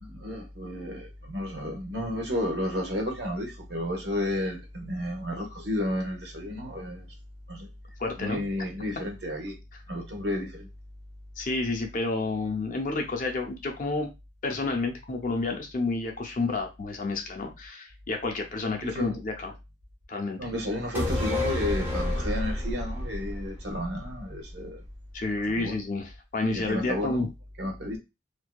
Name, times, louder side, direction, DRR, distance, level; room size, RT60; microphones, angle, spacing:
voice 1, 0.0-7.1 7.5-7.7 8.2-9.6 9.9-10.7 18.8-19.2 20.4-24.8 25.6-25.8 26.5-27.3 27.6-28.0, left 1 dB, 55° right, 0.8 m, -32 dB
voice 2, 8.0-8.4 11.4-14.1 14.4-19.5 20.1-20.4 25.1-27.3, left 3 dB, 40° left, 0.5 m, -30 dB
sound 1, 20.9-24.5 24.8-24.9, left 2 dB, 10° right, 0.5 m, -30 dB
2.6 x 2.1 x 2.2 m
head